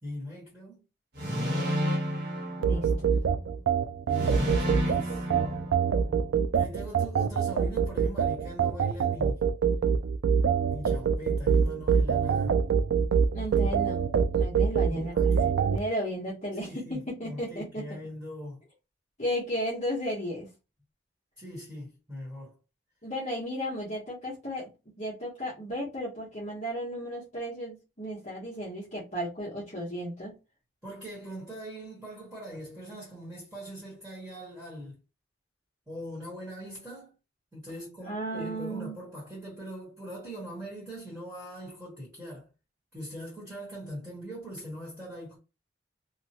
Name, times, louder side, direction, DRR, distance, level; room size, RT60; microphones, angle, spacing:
voice 1, 0.0-0.8 4.1-5.3 6.5-9.4 10.7-12.6 14.9-15.7 16.5-18.6 21.4-22.5 30.8-35.0 35.9-37.1 37.5-42.5 42.9-45.4, equal, 5° right, 1.3 m, -41 dB
sound 1, 1.2-3.3 4.1-6.3, equal, 55° right, 1.1 m, -31 dB
voice 2, 2.6-3.1 13.3-14.0 14.3-15.1 15.6-18.0 19.2-20.5 23.0-24.7 25.0-30.3 38.1-39.0, equal, 35° left, 1.1 m, -34 dB
sound 2, 2.6-15.8, right 6 dB, 85° right, 0.3 m, -25 dB
2.8 x 2.2 x 2.8 m
head